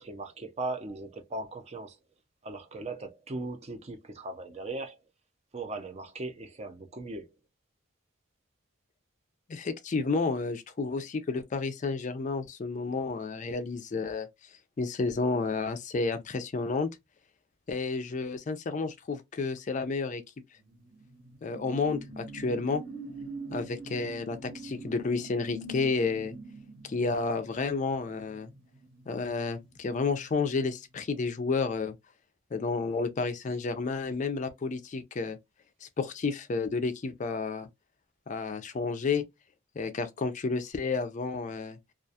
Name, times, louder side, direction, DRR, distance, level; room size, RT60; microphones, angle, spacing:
voice 1, 0.0-2.0 2.4-5.0 5.5-7.3, right 2 dB, 30° right, 0.4 m, -38 dB
voice 2, 9.5-14.3 14.8-16.9 17.7-20.2 21.4-22.8 23.5-26.3 26.8-28.5 29.1-31.9 32.5-35.4 35.8-37.7 38.3-39.2 39.8-41.8, left 4 dB, 35° left, 0.3 m, -31 dB
sound 1, 20.7-29.6 30.0-30.2, right 1 dB, 55° right, 1.0 m, -44 dB
2.3 x 2.2 x 2.6 m
head